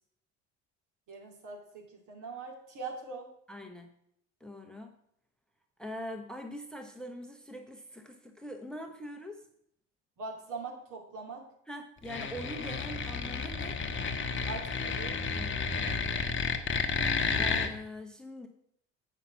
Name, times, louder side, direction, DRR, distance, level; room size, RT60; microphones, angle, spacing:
voice 1, 1.1-3.3 10.2-11.4 14.5-15.2, right 4 dB, 55° right, 0 dB, 2.7 m, -42 dB
voice 2, 3.5-3.9 4.4-4.9 5.8-9.4 11.7-13.8 15.3-15.7 17.1-18.5, equal, ahead, 5 dB, 1.0 m, -43 dB
sound 1, 12.0-17.7, left 5 dB, 30° left, 1.2 m, -31 dB
8.2 x 5.8 x 5.6 m, 0.70 s
hypercardioid pair, 65°, 36 cm